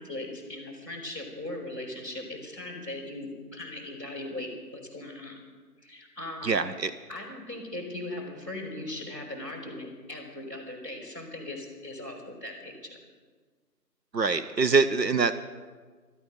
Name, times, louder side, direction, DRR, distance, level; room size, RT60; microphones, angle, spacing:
voice 1, 0.0-5.4 5.8-6.7 7.1-13.0, left 1 dB, 20° right, -8 dB, 3.8 m, -39 dB
voice 2, 6.4-6.9 14.1-15.3, right 4 dB, 80° right, 11 dB, 0.8 m, -24 dB
15.0 x 13.0 x 6.5 m, 1.5 s
figure-of-eight pair, 175°, 50 cm